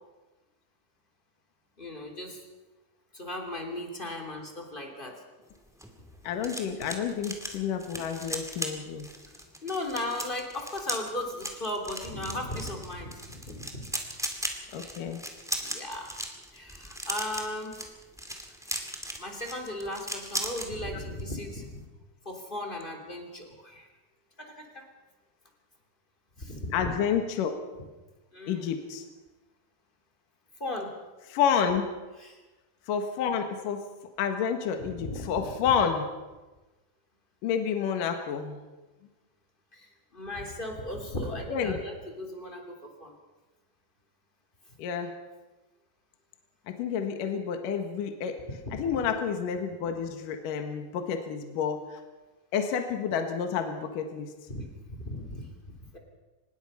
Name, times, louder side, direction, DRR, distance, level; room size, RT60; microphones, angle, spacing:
voice 1, 1.8-2.4 3.1-5.2 9.6-13.9 14.7-14.9 15.6-16.1 16.5-17.8 19.2-21.8 22.2-23.9 24.4-24.9 26.4-27.0 28.3-28.6 30.6-31.0 32.2-32.4 34.8-35.5 39.7-43.1 48.6-48.8 54.5-54.7 55.0-55.5 55.9-56.0, left 1 dB, 15° left, 2 dB, 2.8 m, -36 dB
sound 1, 5.5-20.7 21.0-21.3 21.6-21.8, equal, ahead, 0.8 m, -38 dB
voice 2, 6.2-9.1 14.7-15.2 26.7-27.5 28.5-29.1 31.3-31.9 32.9-33.9 34.2-36.1 37.4-38.6 41.5-41.8 44.8-45.2 46.7-48.4 48.7-52.0 52.5-54.3, left 7 dB, 65° left, 5 dB, 2.9 m, -29 dB
25.0 x 20.5 x 5.6 m, 1.2 s
omnidirectional pair, 4.7 m